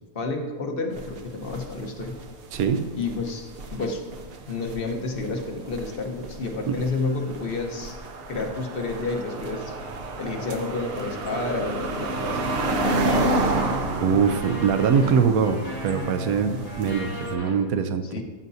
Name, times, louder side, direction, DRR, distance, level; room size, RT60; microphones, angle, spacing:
voice 1, 0.1-2.1 2.9-4.0 4.5-8.0 8.3-9.8 10.2-12.5 12.8-13.5 18.1-18.2, left 3 dB, 40° left, 3 dB, 1.1 m, -30 dB
sound 1, 0.9-17.3, right 2 dB, 50° right, 0.8 m, -31 dB
voice 2, 2.5-2.9 6.7-6.8 14.0-18.0, right 6 dB, 70° right, 9 dB, 1.1 m, -22 dB
sound 2, 12.7-17.5, left 1 dB, 75° left, 2.8 m, -36 dB
13.5 x 7.8 x 2.7 m, 1.4 s
omnidirectional pair, 1.7 m